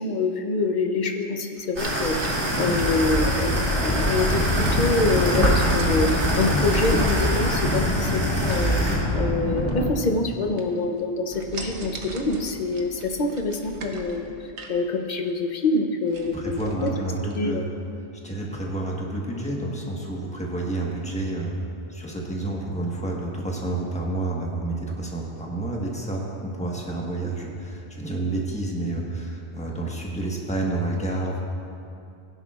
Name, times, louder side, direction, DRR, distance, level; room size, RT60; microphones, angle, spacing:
voice 1, 0.0-8.8 9.1-14.3 14.7-16.9 17.2-17.7, left 3 dB, 45° left, 5 dB, 0.9 m, -26 dB
sound 1, 1.6-3.6 4.2-6.7 6.9-7.8 8.3-8.9 9.6-10.3 10.6-11.0 11.3-14.8 15.3-15.4 15.7-15.8 16.1-16.9 17.3-17.4, right 3 dB, 80° right, 1.2 m, -41 dB
sound 2, 1.8-9.0, right 1 dB, 55° right, 2.0 m, -26 dB
sound 3, 2.5-9.9, left 1 dB, 25° left, 1.1 m, -25 dB
voice 2, 16.3-17.7 18.2-21.5 21.9-31.4, right 2 dB, 5° left, -2 dB, 1.3 m, -29 dB
16.0 x 11.0 x 2.4 m, 2.6 s
omnidirectional pair, 1.2 m